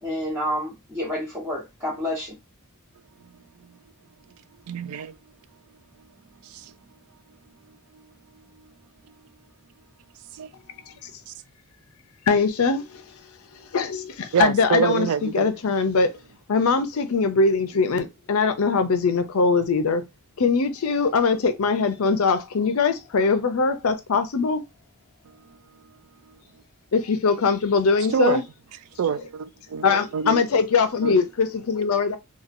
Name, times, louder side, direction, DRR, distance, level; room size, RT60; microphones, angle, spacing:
voice 1, 0.0-2.4, left 1 dB, 10° right, 1.3 m, -29 dB
voice 2, 4.7-5.2 6.4-6.7 7.9-8.0 8.6-8.7 10.3-10.5 14.3-15.5 28.1-28.4 29.0-29.9 30.1-30.4 31.0-31.2, right 7 dB, 80° right, 0.4 m, -26 dB
voice 3, 12.2-16.2 16.5-20.0 20.4-24.6 26.9-28.4 29.8-32.2, left 4 dB, 75° left, 0.5 m, -22 dB
2.9 x 2.3 x 2.5 m
head